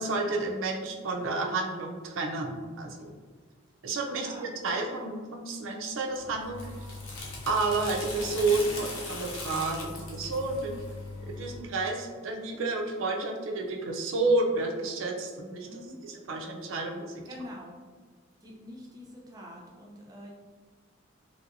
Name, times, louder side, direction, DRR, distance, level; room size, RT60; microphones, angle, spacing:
voice 1, 0.0-3.1 3.8-6.6 7.5-10.7 11.3-17.2, right 3 dB, 85° right, 1 dB, 0.4 m, -30 dB
voice 2, 4.1-4.5 15.6-16.0 17.2-17.8 18.4-20.3, equal, 20° right, -3 dB, 0.5 m, -45 dB
sound 1, 6.1-11.6, left 2 dB, 80° left, 0.8 m, -39 dB
3.0 x 2.7 x 2.5 m, 1.5 s
head